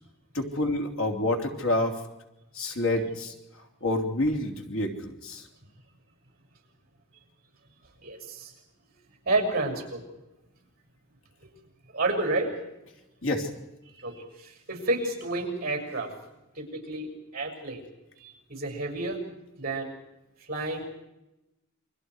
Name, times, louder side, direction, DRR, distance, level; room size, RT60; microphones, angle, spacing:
voice 1, 0.3-2.0 2.5-3.3 3.8-5.4 13.2-13.5, left 1 dB, 85° left, 2 dB, 3.3 m, -28 dB
voice 2, 8.0-8.5 9.2-10.0 11.4-11.5 11.9-12.6 14.0-16.1 16.5-17.8 18.2-19.2 19.6-19.9 20.5-20.9, right 2 dB, 45° right, 3 dB, 6.3 m, -30 dB
29.0 x 24.0 x 4.8 m, 0.92 s
head